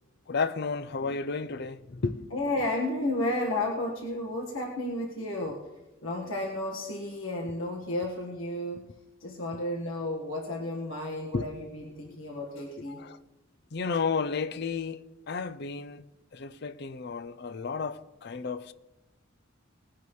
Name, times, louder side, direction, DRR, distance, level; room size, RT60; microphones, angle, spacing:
voice 1, 0.3-2.3 11.3-11.4 12.9-13.2 13.7-16.1 16.3-18.7, left 4 dB, 55° left, 0.6 m, -32 dB
voice 2, 2.3-5.7 6.0-8.8 9.2-13.0, left 1 dB, 90° left, 1.6 m, -32 dB
19.5 x 10.5 x 3.2 m
head